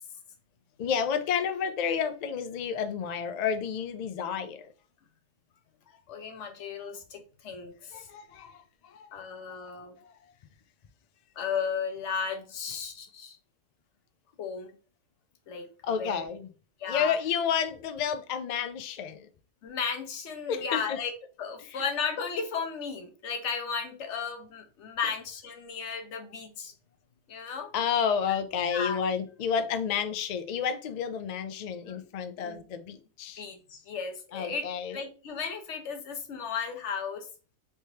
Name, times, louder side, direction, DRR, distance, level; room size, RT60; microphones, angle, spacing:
voice 1, 0.8-4.7 7.9-9.2 9.6-9.7 10.0-10.2 15.8-16.5 16.9-19.3 20.5-21.0 21.7-21.8 27.7-33.4 34.3-35.0, left 7 dB, 60° left, 0.4 m, -31 dB
voice 2, 6.1-8.1 9.1-9.9 11.4-13.4 14.4-14.7 15.5-15.7 16.0-16.2 16.8-17.2 19.6-21.1 21.4-26.7 27.3-27.7 28.7-29.0 31.8-32.0 32.4-32.6 33.4-34.7 34.9-37.3, left 6 dB, 80° left, 1.0 m, -35 dB
3.4 x 3.1 x 2.8 m
omnidirectional pair, 1.2 m